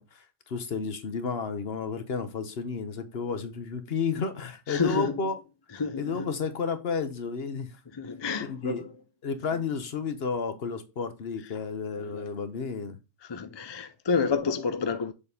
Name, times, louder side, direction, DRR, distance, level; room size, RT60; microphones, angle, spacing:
voice 1, 0.0-5.4 6.0-7.8 8.4-8.8 9.2-13.0, left 5 dB, 55° left, 1.1 m, -32 dB
voice 2, 4.7-5.2 5.8-6.3 8.0-8.9 12.1-12.3 13.3-15.1, left 5 dB, 35° left, 0.4 m, -29 dB
6.9 x 4.1 x 3.3 m
omnidirectional pair, 1.3 m